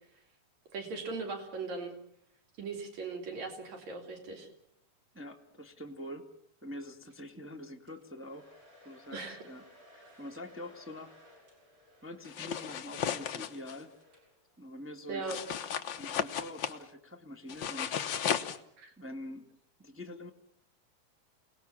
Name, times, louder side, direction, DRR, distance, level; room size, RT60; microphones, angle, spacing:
voice 1, 0.7-2.0 2.6-4.5 9.1-9.4 15.1-15.4 18.8-18.9, right 4 dB, 60° right, 4 dB, 4.4 m, -39 dB
voice 2, 5.1-6.3 6.6-8.5 8.8-9.6 9.9-11.1 12.0-13.9 14.6-15.4 16.0-18.0 19.0-19.5 19.8-20.3, left 1 dB, 10° right, 2 dB, 0.8 m, -45 dB
Domestic sounds home sounds, 7.9-14.6, left 1 dB, 35° right, 8.2 m, -60 dB
sound 1, 12.2-13.8 15.3-16.8 17.5-18.6, left 8 dB, 75° left, 1.0 m, -34 dB
29.0 x 19.0 x 7.2 m, 0.69 s
omnidirectional pair, 3.7 m